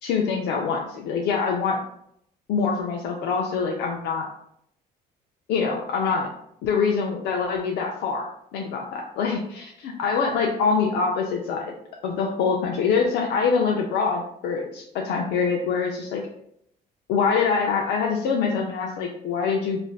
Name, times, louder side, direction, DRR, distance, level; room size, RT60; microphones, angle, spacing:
voice 1, 0.0-1.8 2.5-4.3 5.5-6.3 6.6-9.7 10.0-11.7 12.0-16.2 17.1-19.8, left 5 dB, 80° left, 0 dB, 0.4 m, -24 dB
3.2 x 2.5 x 2.3 m, 0.71 s
cardioid pair, 110°, 17 cm